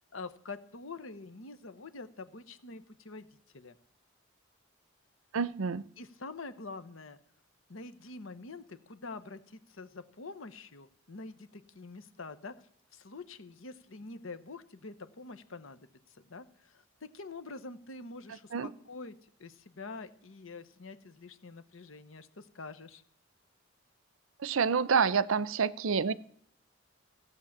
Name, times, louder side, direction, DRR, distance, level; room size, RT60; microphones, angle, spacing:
voice 1, 0.1-3.3 3.5-3.8 6.0-7.2 7.7-12.5 12.9-23.0, left 3 dB, 85° left, 1.0 m, -46 dB
voice 2, 5.3-5.9 18.5-18.7 24.4-26.1, right 6 dB, 85° right, 0.6 m, -28 dB
15.0 x 8.2 x 7.3 m
head